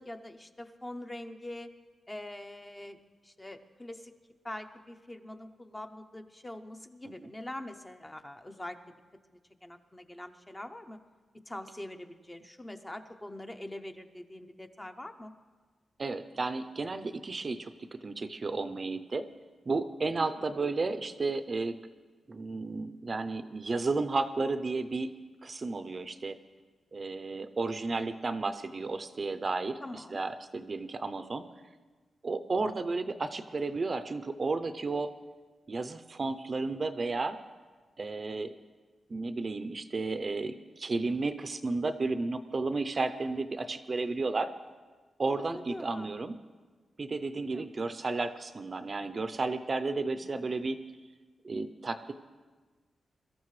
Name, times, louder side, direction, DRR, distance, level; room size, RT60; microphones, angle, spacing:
voice 1, 0.0-1.7 2.1-3.0 3.2-4.1 4.4-8.8 9.6-11.0 11.3-15.3 20.1-20.3 29.8-30.2 45.4-46.2 47.2-47.7 50.1-50.4, left 1 dB, 15° left, 7 dB, 0.6 m, -44 dB
voice 2, 16.0-17.7 18.0-19.2 19.7-21.8 22.3-25.1 25.4-26.4 26.9-31.5 32.2-35.1 35.7-37.4 38.0-38.5 39.1-44.5 45.2-46.4 47.0-50.8 51.4-52.1, right 3 dB, 35° right, 11 dB, 0.5 m, -33 dB
22.5 x 13.5 x 3.2 m, 1.4 s
wide cardioid pair, 130°, 0 cm